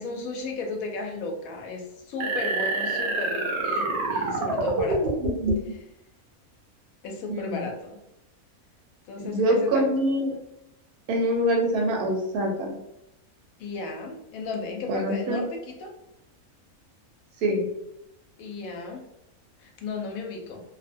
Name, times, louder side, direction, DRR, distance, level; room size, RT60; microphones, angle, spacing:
voice 1, 0.0-5.0 5.6-5.9 7.0-8.0 9.1-9.8 13.6-15.9 18.4-19.0 19.6-20.6, left 3 dB, 75° left, 2 dB, 1.0 m, -34 dB
sound 1, 2.2-5.7, right 2 dB, 60° right, 0.7 m, -26 dB
voice 2, 7.3-7.6 9.2-10.3 11.1-12.7 14.9-15.4 17.4-17.7, right 1 dB, 90° right, 1 dB, 1.1 m, -24 dB
2.5 x 2.1 x 2.5 m, 0.83 s
omnidirectional pair, 1.5 m